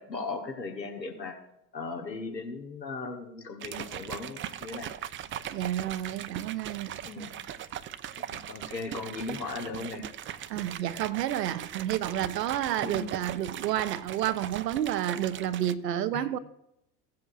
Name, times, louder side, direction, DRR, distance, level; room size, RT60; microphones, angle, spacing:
voice 1, 0.0-1.4 1.7-4.9 7.0-7.4 8.2-10.0 12.8-13.1 16.1-16.2, left 3 dB, 85° left, 1.2 m, -37 dB
sound 1, 3.6-15.7, right 10 dB, 25° right, 0.5 m, -39 dB
voice 2, 5.4-7.0 10.5-16.4, right 11 dB, 75° right, 0.8 m, -30 dB
17.0 x 7.5 x 2.5 m
figure-of-eight pair, 60°, 49 cm